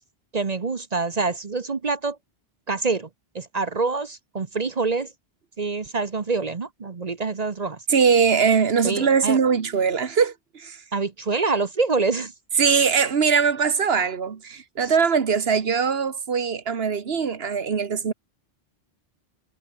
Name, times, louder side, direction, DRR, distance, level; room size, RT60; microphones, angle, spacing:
voice 1, 0.3-2.2 2.7-3.1 3.3-5.1 5.6-7.8 8.8-9.4 10.9-12.3 14.8-14.9, right 4 dB, 40° right, 1.0 m, -26 dB
voice 2, 7.9-10.8 12.6-18.1, right 6 dB, 75° right, 1.5 m, -21 dB
omnidirectional pair, 1.0 m